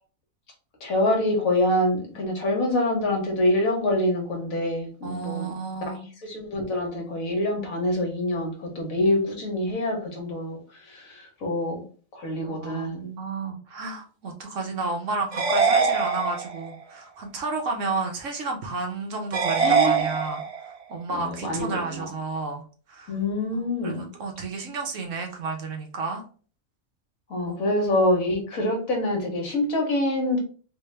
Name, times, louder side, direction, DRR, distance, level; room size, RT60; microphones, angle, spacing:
voice 1, 0.8-5.5 5.9-6.0 6.2-11.8 12.1-13.1 19.6-20.0 21.1-22.1 23.1-24.1 27.3-30.4, left 1 dB, 65° left, 2 dB, 1.5 m, -26 dB
voice 2, 5.0-6.1 12.6-22.6 22.9-23.1 23.6-26.2 27.5-27.6, right 3 dB, 60° right, 2 dB, 1.0 m, -32 dB
sound 1, 15.3-16.7 19.3-20.7, right 5 dB, 40° right, 0.5 m, -23 dB
3.4 x 2.7 x 3.2 m, 0.40 s
omnidirectional pair, 1.6 m